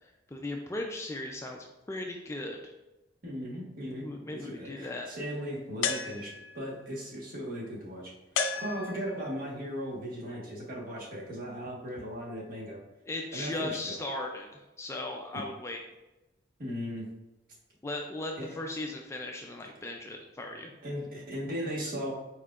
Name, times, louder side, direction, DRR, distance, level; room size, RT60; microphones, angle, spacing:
voice 1, 0.3-2.7 4.0-5.1 13.1-14.5 14.8-15.8 17.8-20.7, left 2 dB, 15° left, 2 dB, 0.3 m, -37 dB
voice 2, 3.2-8.1 8.5-12.8 13.3-14.0 16.6-17.1 18.4-18.5 19.8-19.9 20.8-22.1, equal, 50° right, -4 dB, 1.3 m, -37 dB
sound 1, 5.8-6.7 8.3-9.3, left 6 dB, 80° left, 0.5 m, -33 dB
4.6 x 4.4 x 2.4 m, 1.0 s
head